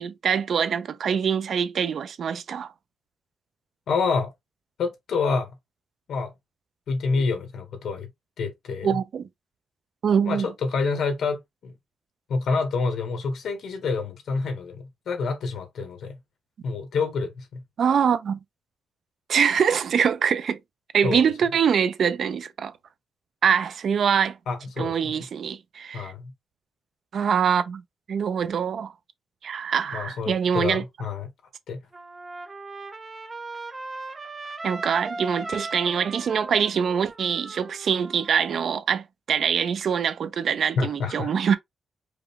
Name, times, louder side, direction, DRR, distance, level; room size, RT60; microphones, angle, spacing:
voice 1, 0.0-2.7 8.8-9.3 10.0-10.5 17.8-18.4 19.3-20.6 20.9-22.7 23.4-24.4 24.8-26.1 27.1-27.8 28.1-28.9 29.4-30.8 34.6-41.6, right 7 dB, 60° right, 0.5 m, -24 dB
voice 2, 3.9-4.3 4.8-5.5 6.1-6.3 6.9-8.1 8.4-9.0 10.2-11.7 12.3-16.2 16.6-17.6 21.0-21.3 24.5-25.1 25.9-26.3 29.9-31.3 31.7-31.8 40.8-41.3, left 4 dB, 85° left, 1.5 m, -28 dB
Trumpet, 31.9-38.6, right 2 dB, 20° right, 0.7 m, -38 dB
5.0 x 2.3 x 3.4 m
wide cardioid pair, 170°, 0 cm